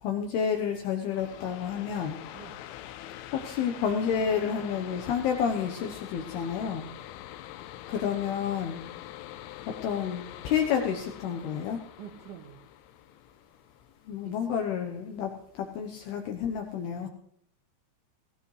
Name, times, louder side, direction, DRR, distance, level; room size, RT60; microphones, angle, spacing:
voice 1, 0.0-2.2 3.3-6.9 7.9-8.8 9.7-11.8 14.1-17.1, left 7 dB, 75° left, 2.6 m, -30 dB
sound 1, 1.1-14.5, left 13 dB, 90° left, 3.1 m, -44 dB
voice 2, 12.0-12.6 14.2-14.4, right 10 dB, 85° right, 1.8 m, -46 dB
19.0 x 17.5 x 3.2 m
omnidirectional pair, 5.3 m